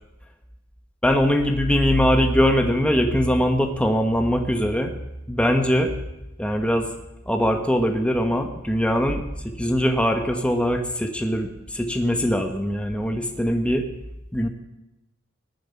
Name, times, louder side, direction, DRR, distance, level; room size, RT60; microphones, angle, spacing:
voice 1, 1.0-4.9 5.3-5.9 6.4-6.9 7.3-13.9 14.3-14.5, equal, 5° left, 5 dB, 1.1 m, -22 dB
17.5 x 7.3 x 9.6 m, 0.95 s
head